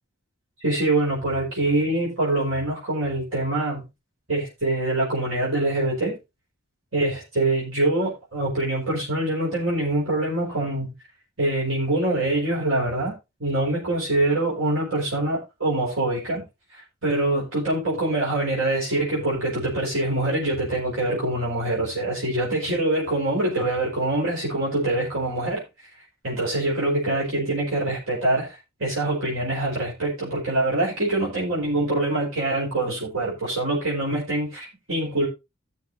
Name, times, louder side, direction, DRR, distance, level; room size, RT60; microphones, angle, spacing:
voice 1, 0.6-3.8 4.3-6.2 6.9-10.9 11.4-13.1 13.4-16.4 16.7-25.6 26.2-35.3, right 2 dB, 90° right, 4.5 m, -24 dB
17.0 x 6.5 x 2.6 m
head